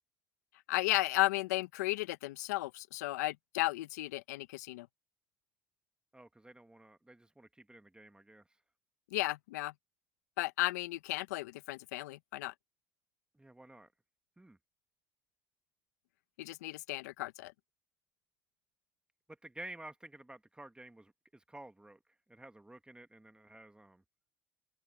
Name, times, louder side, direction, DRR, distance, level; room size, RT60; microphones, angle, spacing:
voice 1, 0.7-4.9 9.1-9.7 10.4-12.5 16.4-17.5, left 18 dB, 85° left, 0.9 m, -34 dB
voice 2, 6.1-8.4 13.4-13.9 14.4-14.6 19.3-22.0 22.3-24.0, right 1 dB, 10° right, 1.8 m, -52 dB
hypercardioid pair, 65°, 9 cm